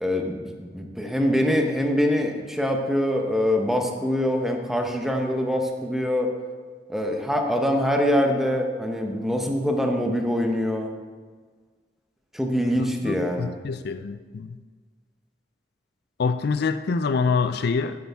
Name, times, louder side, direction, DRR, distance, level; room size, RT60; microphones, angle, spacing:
voice 1, 0.0-6.3 6.9-10.9 12.3-13.6, equal, ahead, 2 dB, 0.9 m, -24 dB
voice 2, 12.8-14.6 16.2-18.1, left 5 dB, 60° left, 10 dB, 0.4 m, -26 dB
10.5 x 8.4 x 3.5 m, 1.5 s
head